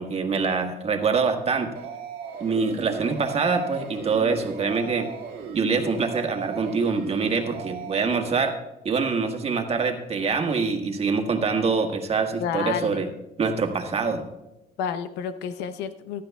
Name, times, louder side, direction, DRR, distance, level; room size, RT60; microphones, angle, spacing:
voice 1, 0.0-1.7 2.4-5.1 5.5-8.6 8.8-13.1 13.4-14.3, right 4 dB, 35° right, 4 dB, 1.5 m, -25 dB
sound 1, 1.7-8.1, right 6 dB, 70° right, 1.7 m, -37 dB
voice 2, 12.4-13.1 14.8-16.2, left 7 dB, 90° left, 11 dB, 0.8 m, -30 dB
16.0 x 12.0 x 2.3 m, 0.99 s
cardioid pair, 110°, 17 cm